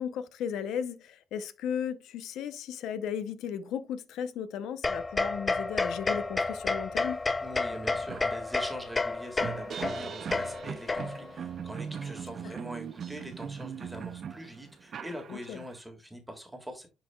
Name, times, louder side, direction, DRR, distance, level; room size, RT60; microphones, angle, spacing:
voice 1, 0.0-7.2 12.4-12.5 15.3-15.6, left 8 dB, 85° left, 0.6 m, -35 dB
sound 1, 4.8-11.4, left 3 dB, 25° left, 0.3 m, -31 dB
sound 2, 7.3-7.4 7.7-15.8, right 7 dB, 55° right, 0.5 m, -40 dB
voice 2, 7.4-16.9, equal, 10° right, 1.7 m, -43 dB
11.0 x 4.0 x 2.2 m
cardioid pair, 90°, 0 cm